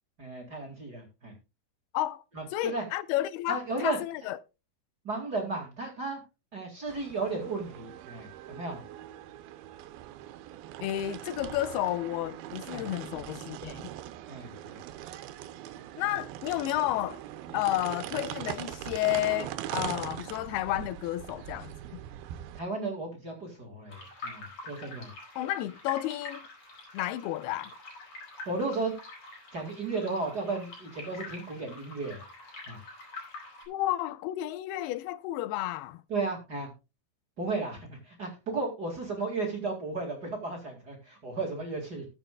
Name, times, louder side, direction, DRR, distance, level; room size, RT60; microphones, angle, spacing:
voice 1, 0.2-1.3 2.3-2.8 3.5-4.0 5.0-6.2 6.5-8.8 12.7-12.9 14.3-14.8 17.5-17.6 22.5-25.1 28.5-28.9 29.5-32.3 32.7-32.8 36.1-36.7 37.4-42.1, right 3 dB, 35° right, 1.9 m, -34 dB
voice 2, 2.5-4.4 10.8-13.9 16.0-17.2 17.5-22.0 25.4-26.5 26.9-27.7 33.7-36.0, left 15 dB, 90° left, 2.7 m, -31 dB
sound 1, 6.9-22.6, right 12 dB, 80° right, 2.6 m, -41 dB
sound 2, 23.9-33.7, left 3 dB, 45° left, 5.2 m, -46 dB
19.0 x 7.2 x 2.3 m
omnidirectional pair, 4.4 m